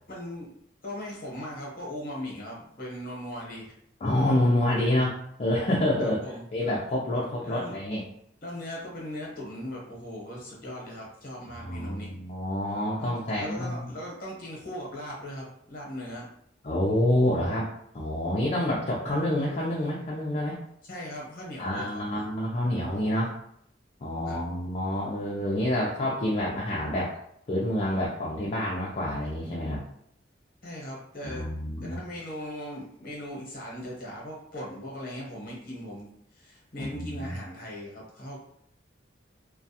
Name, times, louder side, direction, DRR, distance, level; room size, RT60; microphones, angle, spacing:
voice 1, 0.1-0.5 0.8-3.7 6.0-6.4 7.4-7.8 8.4-12.1 13.0-16.3 20.9-22.3 24.2-24.4 30.6-31.5 31.8-36.1 36.3-38.4, left 1 dB, 50° left, -3 dB, 0.9 m, -39 dB
voice 2, 4.0-6.2 6.5-8.0 11.4-13.9 16.6-17.7 17.9-20.6 21.6-23.3 24.0-27.2 27.5-29.8 31.2-32.0 36.8-37.4, left 1 dB, 35° left, -5 dB, 0.4 m, -27 dB
2.3 x 2.2 x 2.7 m, 0.71 s
head